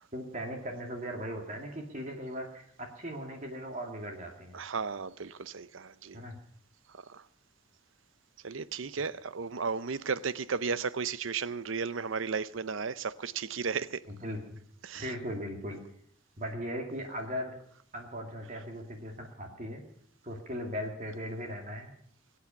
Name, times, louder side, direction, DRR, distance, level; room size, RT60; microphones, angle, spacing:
voice 1, 0.1-4.6 6.1-6.4 14.1-14.6 14.9-15.8 16.4-17.5 17.9-19.8 20.2-21.9, equal, 35° right, 2.4 m, -38 dB
voice 2, 4.5-6.2 7.1-7.2 8.4-14.0 14.8-15.1, right 5 dB, 70° right, 0.7 m, -34 dB
22.5 x 8.6 x 7.0 m
head